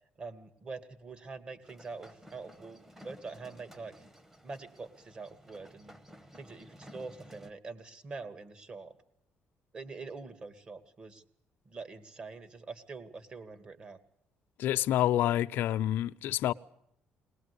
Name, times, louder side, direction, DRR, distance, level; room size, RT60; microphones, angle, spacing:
voice 1, 0.2-3.9 4.4-6.0 6.3-8.9 9.7-11.2 11.7-14.0, right 4 dB, 30° right, 2.4 m, -44 dB
sound 1, 1.6-7.5, equal, 10° right, 1.6 m, -54 dB
voice 2, 14.6-16.5, left 12 dB, 75° left, 0.8 m, -28 dB
21.0 x 20.0 x 8.4 m
cardioid pair, 140°, 3 cm